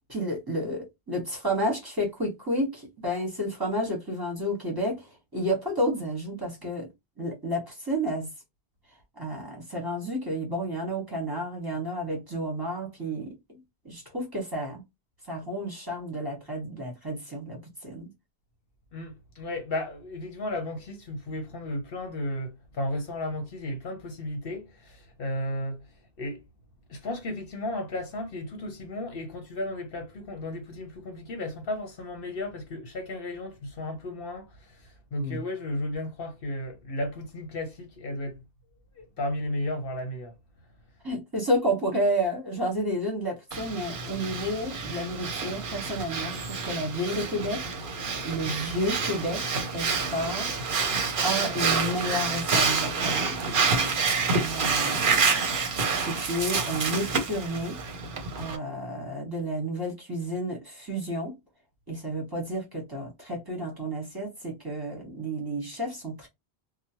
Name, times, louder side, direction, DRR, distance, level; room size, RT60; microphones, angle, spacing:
voice 1, 0.1-6.9 7.2-8.3 9.2-13.6 13.8-14.8 15.3-18.1 35.2-35.4 41.0-47.6 48.2-50.7 51.2-53.4 54.4-55.6 55.9-57.8 58.3-61.3 61.9-66.3, equal, 20° right, 1.2 m, -31 dB
voice 2, 18.9-25.9 26.2-26.4 26.9-38.4 38.9-40.3, left 1 dB, 60° left, 0.9 m, -34 dB
Breathing, 43.5-58.6, right 4 dB, 55° right, 0.8 m, -28 dB
2.9 x 2.1 x 2.8 m
omnidirectional pair, 1.1 m